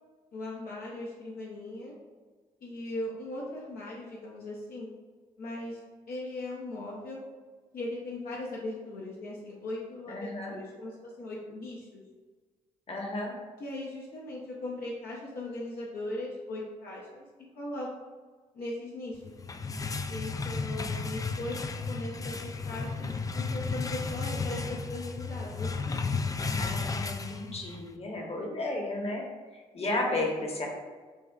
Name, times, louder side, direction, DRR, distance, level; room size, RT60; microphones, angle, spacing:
voice 1, 0.3-1.9 2.6-4.9 5.4-5.8 6.1-7.2 7.7-12.0 13.6-17.2 17.6-17.9 18.5-19.3 20.1-25.9 30.1-30.4, left 2 dB, 60° left, -5 dB, 0.8 m, -39 dB
voice 2, 10.1-10.5 12.9-13.3 26.6-29.2 29.5-30.7, left 2 dB, 40° left, 0 dB, 1.1 m, -33 dB
sound 1, 19.2-27.9, left 4 dB, 20° left, 0.4 m, -33 dB
6.7 x 2.3 x 2.4 m, 1.5 s
hypercardioid pair, 45°, 16 cm